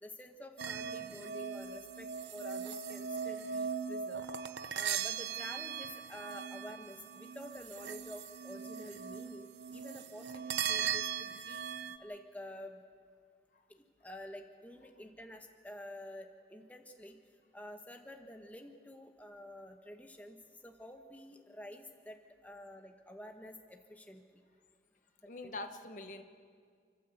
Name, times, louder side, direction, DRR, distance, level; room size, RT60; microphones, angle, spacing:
voice 1, 0.0-4.3 4.7-11.6 12.0-12.8 13.7-17.2 17.5-20.4 20.6-24.4 25.2-25.5, left 1 dB, 10° left, 4 dB, 1.2 m, -49 dB
sound 1, 0.6-12.0, right 7 dB, 80° right, 0.8 m, -39 dB
voice 2, 25.3-26.2, left 2 dB, 45° left, 7 dB, 1.1 m, -44 dB
29.5 x 12.5 x 8.0 m, 2.1 s
head